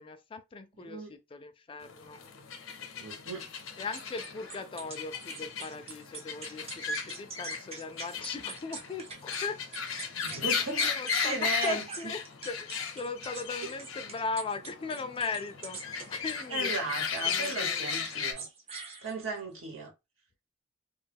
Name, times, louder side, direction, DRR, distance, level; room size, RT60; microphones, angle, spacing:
voice 1, 0.0-2.2 3.8-9.6 10.3-12.2 12.4-16.8 17.3-17.9, left 4 dB, 25° left, 0.3 m, -38 dB
voice 2, 0.8-1.1 3.0-3.5 10.1-10.9 11.2-11.8 16.5-18.5 19.0-19.9, right 2 dB, 80° right, 1.2 m, -35 dB
sound 1, 1.8-18.3, left 6 dB, 80° left, 0.6 m, -36 dB
sound 2, 3.9-9.4 9.7-11.3 11.6-16.5 17.0-17.6 17.9-19.4, right 4 dB, 30° right, 0.6 m, -44 dB
2.3 x 2.2 x 3.4 m
head